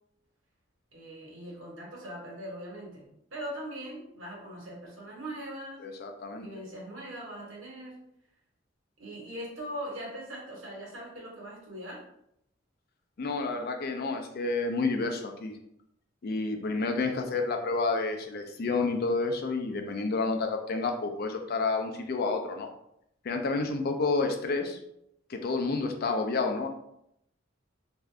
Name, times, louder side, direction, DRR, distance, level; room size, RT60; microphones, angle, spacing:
voice 1, 0.9-5.9 6.3-8.0 9.0-12.0, equal, 85° right, -4 dB, 1.2 m, -41 dB
voice 2, 5.8-6.5 13.2-15.5 16.2-22.7 23.2-24.8 25.3-26.7, left 3 dB, 50° left, 4 dB, 0.4 m, -30 dB
2.6 x 2.4 x 3.2 m, 0.76 s
head